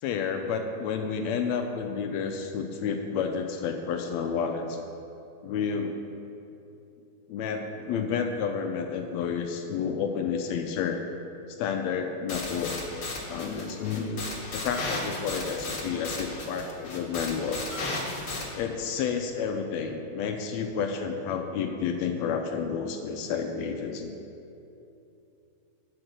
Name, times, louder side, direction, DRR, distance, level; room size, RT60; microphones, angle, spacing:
voice 1, 0.0-4.8 5.4-6.0 7.3-11.0 11.5-12.7 13.3-14.3 14.5-17.6 18.5-24.1, left 6 dB, 80° left, 5 dB, 1.7 m, -30 dB
sound 1, 12.3-18.4, left 2 dB, 45° left, 1.2 m, -35 dB
8.5 x 6.4 x 6.1 m, 2.8 s
omnidirectional pair, 3.4 m